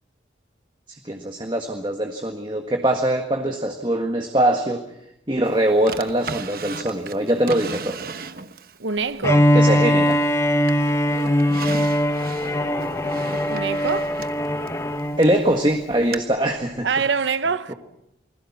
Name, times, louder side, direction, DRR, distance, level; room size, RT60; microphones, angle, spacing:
voice 1, 1.0-4.8 5.3-8.0 9.5-10.2 15.2-16.9 17.7-17.8, right 1 dB, 25° right, 1.7 m, -22 dB
Drawer open or close, 5.9-8.8 9.3-10.3 10.7-15.4 16.1-16.2, right 4 dB, 50° right, 1.1 m, -36 dB
voice 2, 8.8-9.5 13.5-14.2 16.8-17.7, right 5 dB, 80° right, 0.9 m, -24 dB
Bowed string instrument, 9.2-15.3, equal, 15° left, 1.1 m, -21 dB
28.5 x 21.0 x 6.0 m
head